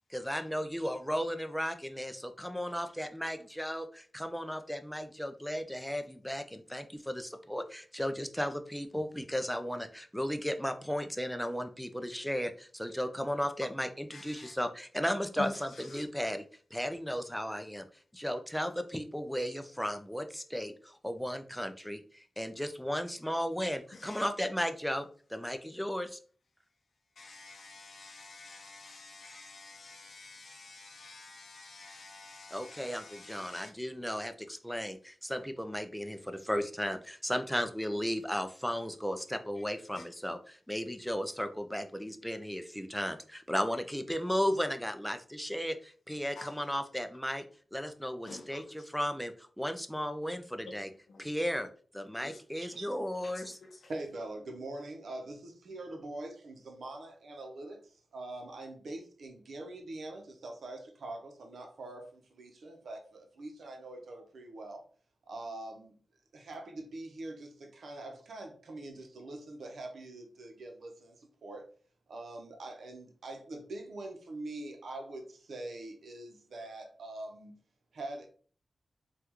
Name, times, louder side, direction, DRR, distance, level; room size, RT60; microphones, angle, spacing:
voice 1, 0.1-16.4 16.7-17.9 18.1-26.2 32.5-47.4 47.7-50.9 51.2-51.7 51.9-53.6, equal, 5° left, 8 dB, 0.4 m, -35 dB
voice 2, 14.1-14.5 15.4-16.0 23.9-24.3 27.2-33.7 39.9-40.0 46.4-46.5 48.3-48.6 51.1-51.2 52.2-52.4 53.2-53.9, left 3 dB, 75° left, 2 dB, 0.5 m, -48 dB
voice 3, 53.9-64.8 65.2-66.0 66.3-71.7 72.1-77.6 77.9-78.3, right 2 dB, 85° right, 3 dB, 0.7 m, -44 dB
3.4 x 2.3 x 2.9 m, 0.43 s
cardioid pair, 75°, 0 cm